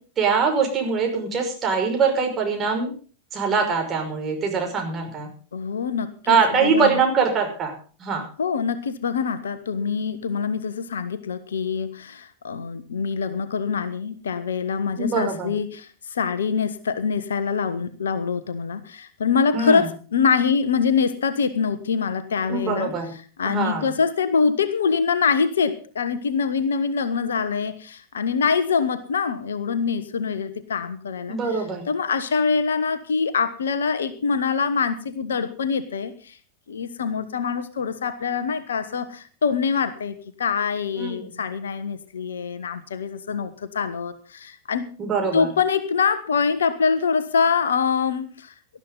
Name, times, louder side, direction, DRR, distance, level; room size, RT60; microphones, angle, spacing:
voice 1, 0.2-2.9 3.3-5.3 6.3-7.7 8.0-8.3 15.0-15.5 19.5-19.9 22.5-23.1 23.4-23.9 31.3-31.9 41.0-41.3 45.0-45.5, right 5 dB, 25° right, 2 dB, 5.7 m, -23 dB
voice 2, 5.5-6.9 8.4-22.9 23.4-31.4 31.9-36.4 36.7-44.9 45.3-48.5, left 5 dB, 65° left, 12 dB, 1.3 m, -24 dB
19.0 x 12.5 x 3.9 m, 0.39 s
figure-of-eight pair, 90°, 0 cm